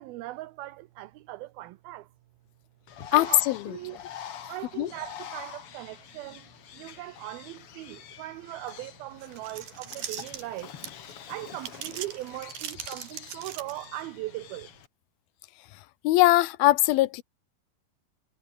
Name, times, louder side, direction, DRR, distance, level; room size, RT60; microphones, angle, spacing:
voice 1, 0.0-2.1 3.1-3.4 3.7-4.0 4.5-6.5 6.7-10.7 11.3-14.7, right 17 dB, 80° right, 2.6 m, -39 dB
Bird, 2.9-14.9, left 9 dB, 55° left, 1.7 m, -46 dB
voice 2, 3.1-3.6 4.8-4.9 16.0-17.2, left 17 dB, 75° left, 2.7 m, -21 dB
sound 1, 9.2-11.1 11.6-14.0, right 10 dB, 65° right, 3.6 m, -39 dB
omnidirectional pair, 4.5 m